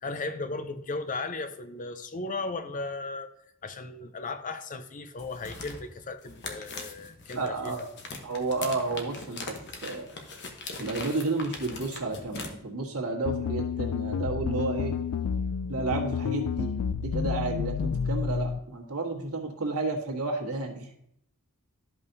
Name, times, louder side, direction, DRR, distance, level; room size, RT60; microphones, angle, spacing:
voice 1, 0.0-3.3 3.6-7.8, left 3 dB, 35° left, 10 dB, 0.6 m, -36 dB
sound 1, 5.2-12.5, left 3 dB, 50° left, 1.0 m, -41 dB
voice 2, 7.3-7.8 8.2-9.5 9.8-10.1 10.8-14.9 15.7-16.7 17.0-20.9, right 3 dB, 70° right, 0 dB, 1.7 m, -31 dB
sound 2, 13.3-18.6, left 6 dB, 80° left, 0.4 m, -30 dB
12.5 x 5.4 x 2.7 m, 0.74 s
head